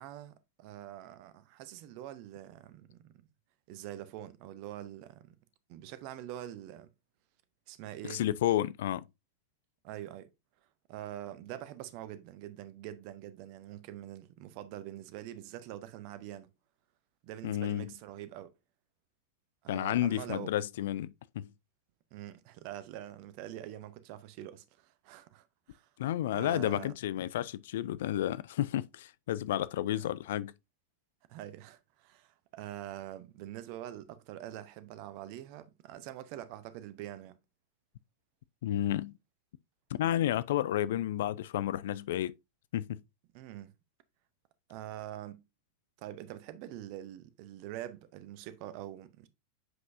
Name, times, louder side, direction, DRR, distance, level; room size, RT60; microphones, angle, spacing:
voice 1, 0.0-3.1 3.7-5.4 5.7-6.9 7.7-8.2 9.8-10.3 10.9-16.5 17.2-18.5 19.6-20.5 22.1-25.9 26.3-26.9 29.9-30.0 31.3-37.4 43.3-43.7 44.7-45.4 46.0-49.3, right 13 dB, 45° right, 0.7 m, -45 dB
voice 2, 8.0-9.0 17.4-17.9 19.7-21.5 26.0-30.5 38.6-39.1 39.9-42.4 42.7-43.0, left 12 dB, 55° left, 0.3 m, -31 dB
7.7 x 5.3 x 2.6 m
figure-of-eight pair, 90°, 0 cm